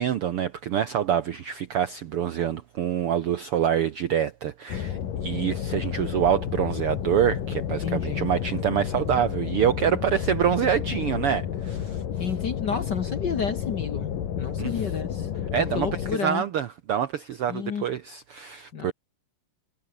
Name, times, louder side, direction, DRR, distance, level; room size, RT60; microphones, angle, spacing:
voice 1, 0.0-12.0 14.6-14.7 15.5-18.9, right 9 dB, 70° right, 1.3 m, -26 dB
sound 1, 4.7-16.2, left 9 dB, 85° left, 3.9 m, -31 dB
voice 2, 7.8-8.3 12.2-14.1 14.4-15.3 15.5-16.4 17.5-17.8 18.7-18.9, left 6 dB, 50° left, 1.4 m, -31 dB
omnidirectional pair, 3.8 m